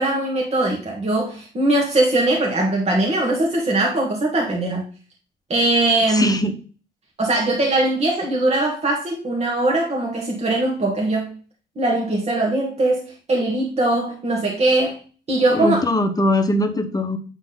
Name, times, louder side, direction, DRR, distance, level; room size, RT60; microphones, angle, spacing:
voice 1, 0.0-4.8 5.5-6.4 7.2-11.3 11.8-15.0 15.3-15.8, right 2 dB, 35° right, -1 dB, 1.7 m, -21 dB
voice 2, 6.1-6.5 15.5-17.2, left 1 dB, 20° left, 7 dB, 1.1 m, -21 dB
8.3 x 3.9 x 3.9 m, 0.38 s
cardioid pair, 90°, 20 cm